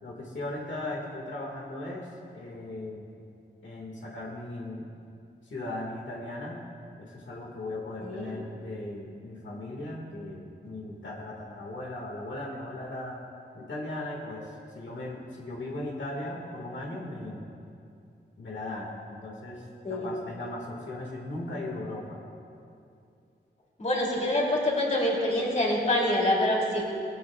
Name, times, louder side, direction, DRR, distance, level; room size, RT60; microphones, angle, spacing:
voice 1, 0.0-2.1 2.3-3.1 3.6-4.9 5.5-6.6 7.0-13.2 13.5-17.5 18.4-22.2, left 2 dB, 90° left, -2 dB, 1.9 m, -37 dB
voice 2, 23.8-26.8, left 1 dB, 40° left, -3 dB, 2.9 m, -26 dB
19.0 x 14.5 x 2.4 m, 2.5 s
wide cardioid pair, 120°, 18 cm